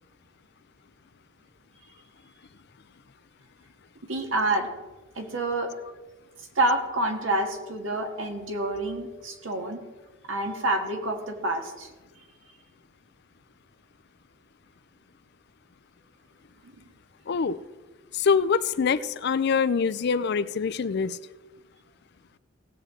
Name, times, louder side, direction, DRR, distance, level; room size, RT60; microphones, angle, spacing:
voice 1, 4.0-4.7 5.2-5.7 6.6-9.8 10.3-11.9 16.6-16.7, right 2 dB, 80° right, 3 dB, 1.7 m, -28 dB
voice 2, 17.3-17.6 18.2-21.2, left 5 dB, 55° left, 15 dB, 0.4 m, -24 dB
17.5 x 7.9 x 3.8 m, 1.2 s
head